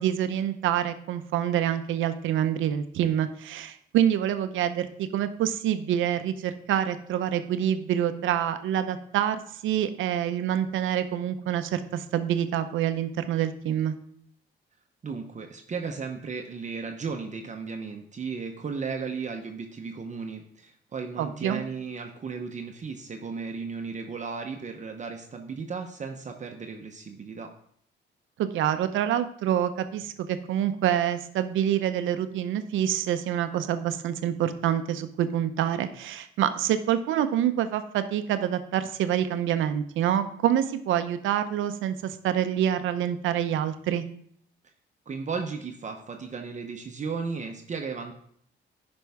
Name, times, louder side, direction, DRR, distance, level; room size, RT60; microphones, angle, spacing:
voice 1, 0.0-13.9 21.2-21.6 28.4-44.0, right 10 dB, 80° right, 10 dB, 0.7 m, -26 dB
voice 2, 15.0-27.5 45.1-48.1, right 5 dB, 35° right, 4 dB, 0.8 m, -35 dB
10.0 x 5.3 x 3.5 m, 0.65 s
cardioid pair, 90°, 20 cm